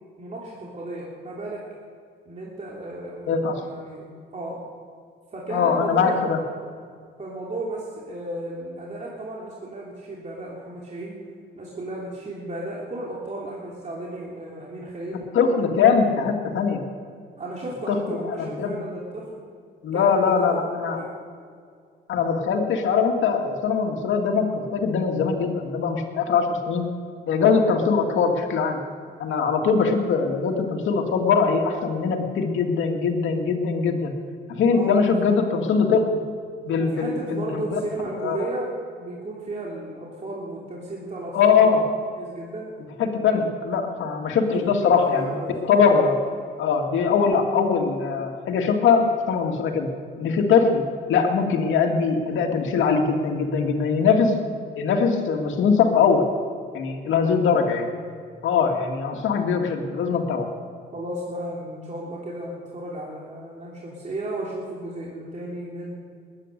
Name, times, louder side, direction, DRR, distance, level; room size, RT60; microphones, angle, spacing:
voice 1, 0.2-1.6 2.2-4.6 5.3-6.3 7.2-11.2 11.5-15.2 17.4-19.4 19.9-21.1 34.7-35.8 36.8-38.7 39.0-41.7 42.1-42.7 43.7-44.1 44.5-45.5 60.9-66.0, right 1 dB, 35° right, -4 dB, 3.1 m, -34 dB
voice 2, 3.3-3.6 5.5-6.4 15.3-16.8 17.9-18.7 19.8-21.0 22.1-26.8 27.3-28.8 29.2-34.1 34.5-36.2 36.7-37.8 38.2-38.5 41.3-41.8 43.0-45.3 45.6-46.2 46.6-49.9 50.2-50.8 51.1-54.3 54.8-56.3 56.7-57.9 58.4-60.5, left 5 dB, 75° left, 3 dB, 2.2 m, -21 dB
20.5 x 9.9 x 6.7 m, 2.2 s
cardioid pair, 90°, 20 cm